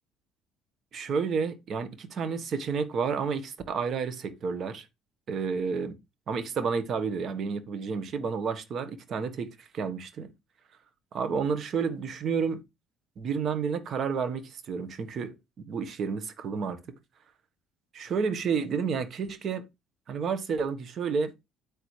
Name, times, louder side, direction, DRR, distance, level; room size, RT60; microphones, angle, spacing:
voice 1, 0.9-4.9 5.3-6.0 6.3-10.3 11.1-12.6 13.2-16.8 17.9-19.6 20.1-21.3, right 5 dB, 45° right, 1.4 m, -30 dB
8.8 x 8.4 x 3.3 m
cardioid pair, 110°, 0 cm